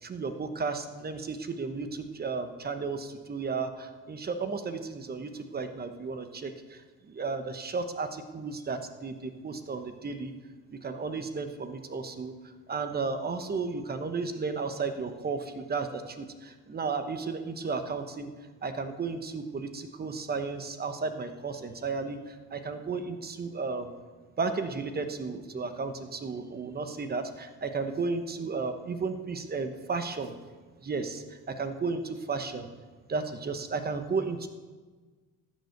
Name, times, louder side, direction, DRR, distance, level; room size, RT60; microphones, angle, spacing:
voice 1, 0.0-10.3 10.7-18.3 18.6-23.9 24.4-30.3 30.8-32.7 33.1-34.5, right 4 dB, 25° right, 8 dB, 1.0 m, -34 dB
14.0 x 9.6 x 6.6 m, 1.4 s
cardioid pair, 135°, 38 cm